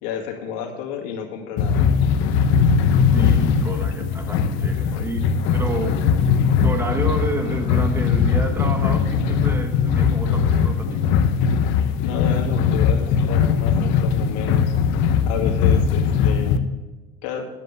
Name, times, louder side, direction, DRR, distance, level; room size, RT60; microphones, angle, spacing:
voice 1, 0.0-1.8 12.0-14.7 15.3-16.6 17.2-17.5, left 7 dB, 90° left, 2 dB, 2.2 m, -31 dB
sound 1, 1.6-16.6, left 6 dB, 65° left, 0.9 m, -20 dB
voice 2, 3.1-6.1 6.6-11.2, right 2 dB, 10° right, 6 dB, 1.2 m, -30 dB
10.5 x 7.9 x 6.7 m, 1.2 s
cardioid pair, 135°, 21 cm